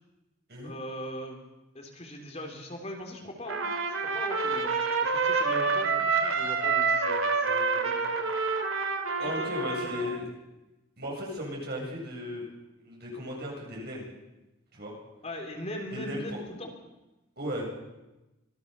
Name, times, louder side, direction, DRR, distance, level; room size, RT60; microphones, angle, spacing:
voice 1, 0.6-1.4 1.7-3.6 4.1-4.7 5.0-8.2 9.4-9.5 9.8-10.1 15.2-16.7, left 1 dB, 30° left, 2 dB, 3.9 m, -40 dB
Trumpet, 3.5-10.2, right 4 dB, 85° right, 2.8 m, -28 dB
voice 2, 9.2-10.3 11.0-12.4 12.8-14.1 14.7-15.0 15.9-16.4 17.4-17.6, left 1 dB, 50° right, -1 dB, 7.8 m, -36 dB
25.5 x 17.5 x 7.0 m, 1.0 s
head